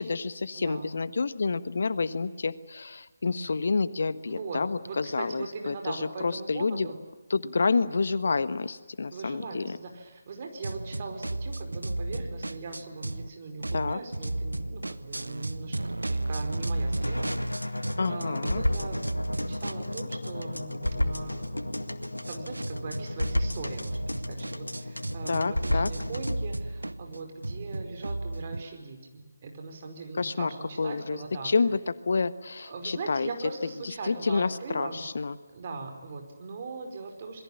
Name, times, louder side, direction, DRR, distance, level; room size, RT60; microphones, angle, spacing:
voice 1, 0.0-6.9 7.3-9.8 13.7-14.0 18.0-18.6 25.3-25.9 30.2-30.5 30.8-31.2 31.4-33.3 34.1-35.3, left 4 dB, 55° left, 14 dB, 1.4 m, -28 dB
voice 2, 0.5-0.9 3.3-3.5 4.2-7.0 7.7-7.9 9.1-21.7 22.2-24.0 24.3-31.5 32.6-35.0 35.5-37.4, right 4 dB, 35° right, 4 dB, 5.1 m, -40 dB
sound 1, 10.6-13.3 13.6-18.1 18.4-28.6, right 2 dB, 75° right, 1.0 m, -34 dB
sound 2, 17.0-26.4, left 1 dB, 85° left, 2.0 m, -32 dB
27.0 x 22.0 x 8.8 m, 1.2 s
figure-of-eight pair, 150°, 0 cm